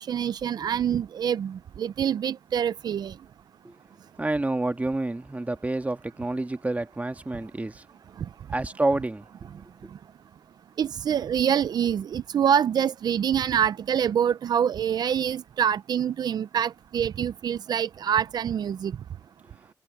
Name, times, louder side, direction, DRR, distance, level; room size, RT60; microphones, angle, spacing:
voice 1, 0.0-3.1 10.8-18.9, right 9 dB, 80° right, 0.5 m, -25 dB
voice 2, 4.2-7.8 8.5-9.3, right 2 dB, 20° right, 1.6 m, -28 dB
cardioid pair, 65°, 7 cm